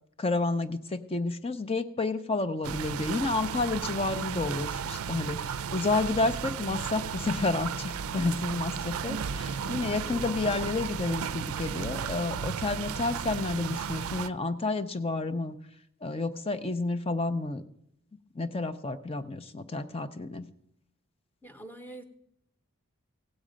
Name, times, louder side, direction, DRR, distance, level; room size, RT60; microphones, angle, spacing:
voice 1, 0.2-15.6 16.0-17.6 18.3-20.5, left 3 dB, 25° left, 11 dB, 0.5 m, -30 dB
sound 1, 2.6-14.3, right 7 dB, 75° right, 0.4 m, -34 dB
Bowed string instrument, 3.1-11.5, left 1 dB, 85° left, 1.6 m, -50 dB
voice 2, 21.4-22.0, right 1 dB, 10° left, 6 dB, 0.9 m, -45 dB
16.0 x 8.5 x 5.1 m, 0.76 s
head